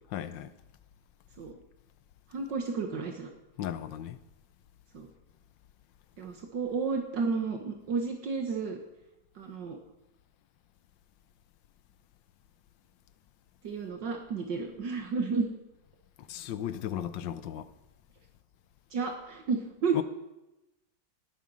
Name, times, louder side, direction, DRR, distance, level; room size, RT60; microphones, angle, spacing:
voice 1, 0.1-0.5 3.6-4.2 16.3-17.7 19.9-20.0, left 10 dB, 75° left, 1.4 m, -35 dB
voice 2, 2.3-3.3 4.9-5.1 6.2-8.8 9.4-9.8 13.6-15.5 18.9-20.0, right 4 dB, 70° right, 2.0 m, -32 dB
18.5 x 9.2 x 6.3 m
omnidirectional pair, 2.1 m